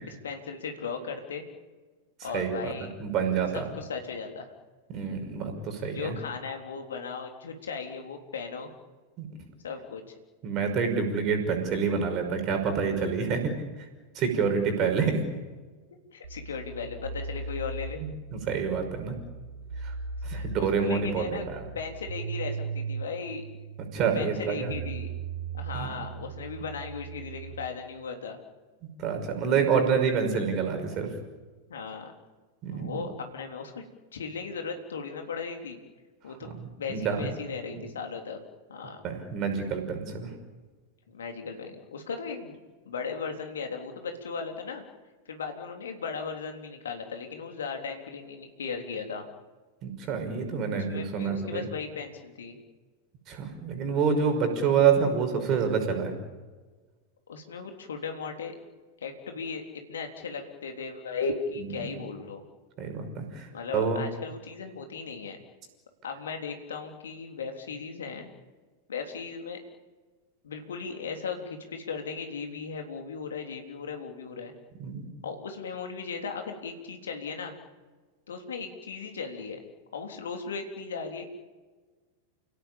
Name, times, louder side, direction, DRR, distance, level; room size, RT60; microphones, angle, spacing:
voice 1, 0.2-1.4 2.2-2.9 3.5-4.5 5.9-8.7 9.6-10.0 16.1-18.0 20.3-23.4 23.9-25.1 25.5-28.4 31.7-32.1 32.7-33.9 34.1-35.8 36.2-36.5 36.8-38.4 38.7-39.0 41.1-42.6 42.9-44.8 45.3-49.3 50.7-52.6 57.3-58.6 59.0-62.4 63.5-65.4 66.0-68.3 68.9-69.6 70.4-74.5 75.2-77.6 78.3-79.6 79.9-81.3, left 5 dB, 65° left, 4 dB, 3.6 m, -37 dB
voice 2, 3.0-3.6 4.9-6.1 9.2-9.3 10.4-13.5 14.2-15.2 18.0-19.2 19.8-19.9 20.2-21.6 23.9-24.7 25.7-25.9 29.0-31.1 32.6-33.0 36.4-36.5 36.9-37.3 37.7-37.8 39.0-40.3 49.8-51.6 53.3-56.1 62.8-63.5 63.7-64.0 74.8-75.1, right 6 dB, 35° right, 6 dB, 5.7 m, -27 dB
sound 1, 16.2-27.7, right 5 dB, 70° right, 1.6 m, -38 dB
29.5 x 17.0 x 8.9 m, 1.3 s
figure-of-eight pair, 90°, 0 cm